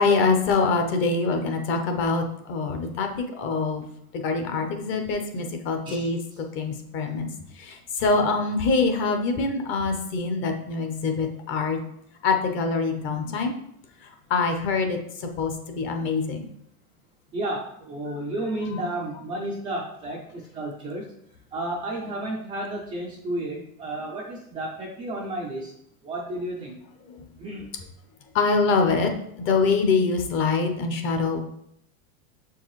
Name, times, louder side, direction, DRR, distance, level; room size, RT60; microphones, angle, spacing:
voice 1, 0.0-3.1 3.4-3.9 4.1-7.3 7.5-11.8 12.2-13.5 14.0-16.5 18.7-18.8 27.1-27.2 28.3-29.1 29.4-31.4, left 4 dB, 30° left, 5 dB, 0.7 m, -24 dB
voice 2, 17.3-21.1 21.5-25.7 26.0-26.8 27.4-27.7, right 1 dB, 10° right, -5 dB, 0.4 m, -32 dB
6.7 x 4.6 x 3.1 m, 0.72 s
supercardioid pair, 150°, 44 cm